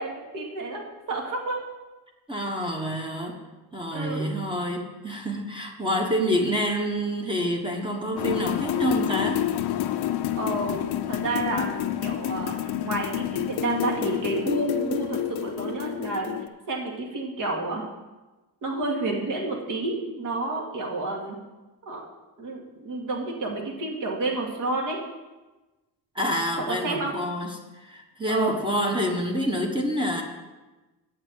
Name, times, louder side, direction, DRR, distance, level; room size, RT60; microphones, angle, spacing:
voice 1, 0.0-1.6 3.9-4.2 10.3-16.3 16.7-17.8 18.6-21.4 21.8-22.0 22.4-25.0 26.7-27.1 28.3-28.6, right 2 dB, 55° right, 0 dB, 2.3 m, -30 dB
voice 2, 2.3-3.4 3.7-9.5 9.9-10.0 26.1-30.2, equal, 15° right, 1 dB, 1.2 m, -27 dB
sound 1, 8.2-16.5, left 12 dB, 85° left, 0.7 m, -29 dB
8.5 x 6.0 x 8.0 m, 1.1 s
cardioid pair, 145°, 38 cm